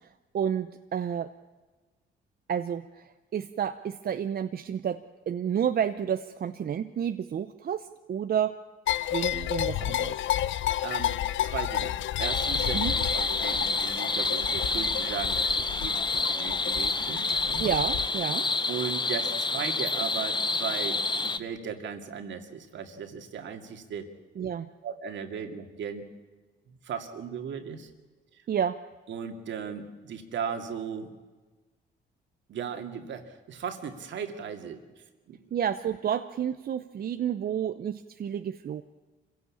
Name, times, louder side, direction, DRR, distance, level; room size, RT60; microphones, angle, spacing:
voice 1, 0.0-1.3 2.5-8.6 9.1-10.2 12.7-12.9 17.6-18.5 24.4-24.7 28.5-28.8 35.5-38.8, right 8 dB, 50° right, 9 dB, 0.8 m, -30 dB
sound 1, 8.9-18.1, left 12 dB, 75° left, 0.6 m, -31 dB
voice 2, 10.8-17.6 18.7-24.1 24.8-26.1 26.7-27.9 28.3-28.4 29.1-31.1 32.5-34.8 35.3-35.4, right 7 dB, 70° right, 5 dB, 2.4 m, -37 dB
sound 2, 12.2-21.4, left 3 dB, 25° left, 1.0 m, -28 dB
25.5 x 16.5 x 8.6 m, 1.3 s
cardioid pair, 90°, 20 cm